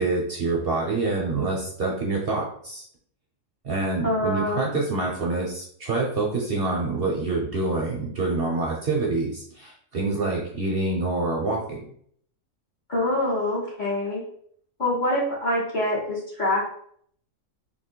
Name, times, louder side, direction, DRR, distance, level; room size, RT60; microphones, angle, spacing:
voice 1, 0.0-2.8 3.6-11.8, right 3 dB, 50° right, -2 dB, 0.9 m, -26 dB
voice 2, 4.0-4.6 12.9-14.2 14.8-16.7, left 1 dB, 35° left, -5 dB, 1.4 m, -25 dB
3.0 x 2.9 x 4.4 m, 0.64 s
omnidirectional pair, 1.4 m